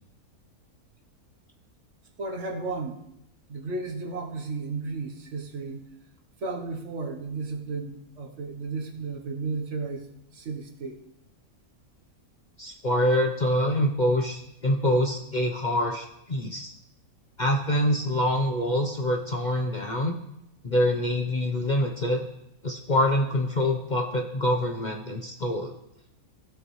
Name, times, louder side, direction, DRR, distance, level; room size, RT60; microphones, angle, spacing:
voice 1, 2.2-3.0 3.5-5.9 6.4-11.0, right 3 dB, 55° right, 3 dB, 1.3 m, -34 dB
voice 2, 12.6-16.7 17.4-20.2 20.6-22.2 22.6-25.7, left 1 dB, 40° left, 1 dB, 0.8 m, -25 dB
16.0 x 8.5 x 3.2 m, 0.83 s
omnidirectional pair, 1.5 m